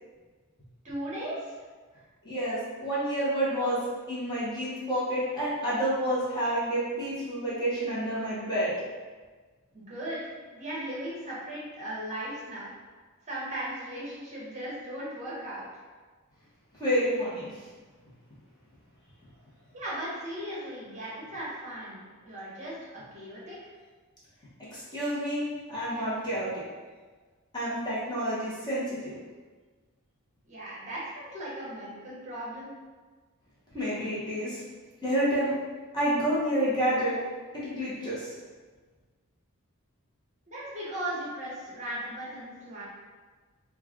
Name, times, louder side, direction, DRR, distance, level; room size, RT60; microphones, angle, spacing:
voice 1, 0.8-1.5 9.7-12.7 13.2-15.7 19.7-23.7 30.4-32.7 40.5-42.8, right 1 dB, 30° right, -7 dB, 0.9 m, -37 dB
voice 2, 2.2-3.8 4.1-8.7 16.8-17.5 24.7-26.5 27.5-29.2 33.7-34.6 35.0-35.5 35.9-37.1 37.6-38.3, right 1 dB, 20° left, -9 dB, 0.9 m, -29 dB
3.1 x 2.4 x 3.6 m, 1.4 s
head